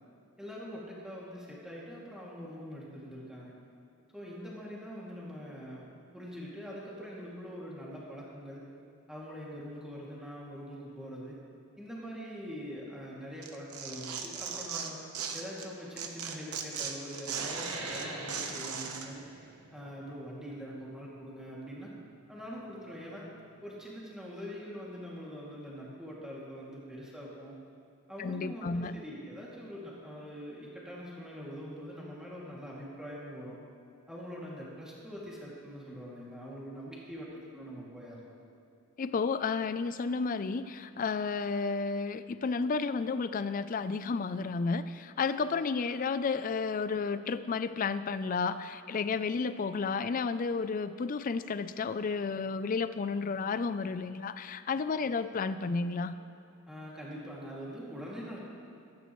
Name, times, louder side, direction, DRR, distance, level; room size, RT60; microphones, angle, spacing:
voice 1, 0.4-3.5 4.1-8.6 9.1-11.4 11.8-15.0 15.3-19.2 19.7-21.9 22.3-23.3 23.6-27.5 28.1-33.6 34.1-38.3 56.7-58.4, equal, 5° right, -6 dB, 2.4 m, -43 dB
Tearing, 13.4-15.7 16.0-19.1, right 6 dB, 80° right, 1.0 m, -38 dB
sound 1, 17.4-22.5, right 2 dB, 65° right, 1.7 m, -44 dB
voice 2, 28.2-29.0 39.0-56.1, left 4 dB, 40° left, 13 dB, 0.4 m, -32 dB
16.0 x 13.5 x 3.1 m, 2.7 s
head